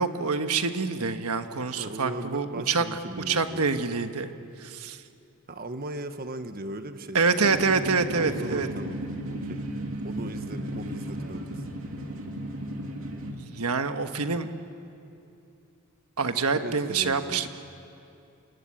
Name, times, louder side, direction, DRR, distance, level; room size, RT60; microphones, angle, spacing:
voice 1, 0.0-2.8 3.3-4.3 4.6-5.0 7.1-8.7 13.2-14.5 16.2-17.5, right 4 dB, 85° right, 8 dB, 1.3 m, -26 dB
voice 2, 1.8-3.7 5.5-7.4 8.1-9.0 9.3-9.6 10.0-11.6 16.5-17.5, right 2 dB, 45° right, 9 dB, 1.2 m, -38 dB
sound 1, 7.4-13.3, right 1 dB, 65° right, 2.9 m, -35 dB
27.5 x 22.5 x 8.7 m, 2.7 s
head